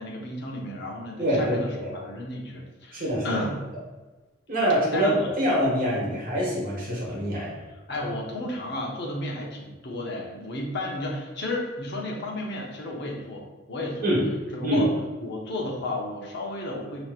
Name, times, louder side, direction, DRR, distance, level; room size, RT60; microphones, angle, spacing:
voice 1, 0.0-3.6 4.9-5.3 6.0-6.1 7.7-14.1 14.5-14.9 15.2-17.0, left 1 dB, 55° left, -1 dB, 0.8 m, -33 dB
voice 2, 1.2-1.9 2.9-3.4 4.5-5.1 5.4-7.6 14.0-14.2 14.6-14.8, equal, 45° right, -5 dB, 1.2 m, -25 dB
4.9 x 2.9 x 2.4 m, 1.2 s
head